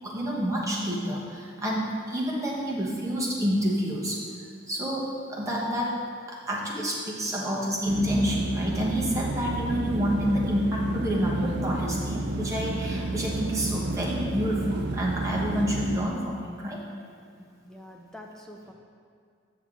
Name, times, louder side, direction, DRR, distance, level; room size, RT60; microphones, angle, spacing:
voice 1, 0.0-4.2 4.7-6.0 6.3-16.8, equal, 15° right, -4 dB, 1.1 m, -28 dB
sound 1, 7.9-16.0, right 2 dB, 55° right, 0.4 m, -31 dB
voice 2, 17.4-18.7, left 1 dB, 5° left, 0 dB, 0.5 m, -46 dB
6.8 x 6.2 x 3.7 m, 2.2 s
head